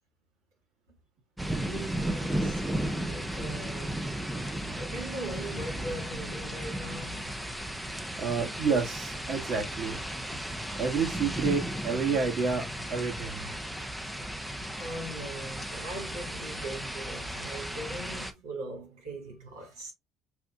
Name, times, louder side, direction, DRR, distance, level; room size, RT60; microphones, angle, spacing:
sound 1, 1.4-18.3, right 1 dB, 5° right, 0.7 m, -35 dB
voice 1, 1.5-2.6 2.9-4.0 4.5-7.3 14.8-19.9, right 1 dB, 80° right, 2.4 m, -40 dB
voice 2, 8.2-10.1 10.8-12.6 12.9-13.5, right 5 dB, 50° right, 1.8 m, -29 dB
6.2 x 2.5 x 2.4 m
hypercardioid pair, 65°, 0 cm